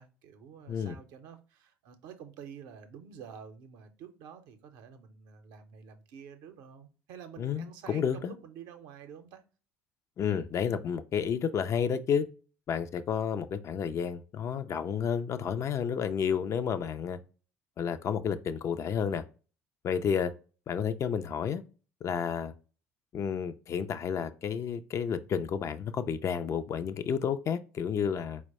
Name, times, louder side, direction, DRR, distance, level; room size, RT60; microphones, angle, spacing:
voice 1, 0.0-9.4, right 7 dB, 65° right, 0.6 m, -49 dB
voice 2, 7.4-8.4 10.2-12.3 12.7-17.2 17.8-19.2 19.8-20.3 20.7-21.6 22.0-22.5 23.1-28.4, left 7 dB, 40° left, 0.4 m, -31 dB
4.4 x 2.1 x 4.1 m
hypercardioid pair, 60°, 7 cm